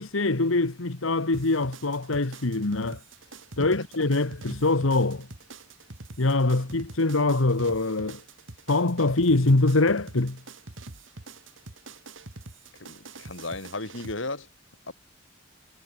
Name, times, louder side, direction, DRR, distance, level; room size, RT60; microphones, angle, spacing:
voice 1, 0.0-3.0 3.6-5.3 6.2-8.2 8.7-10.4, left 2 dB, 85° left, 1.5 m, -24 dB
sound 1, 1.3-14.1, right 3 dB, 75° right, 2.2 m, -45 dB
voice 2, 3.6-4.0 12.8-14.5 14.9-15.0, left 2 dB, 70° left, 4.0 m, -35 dB
head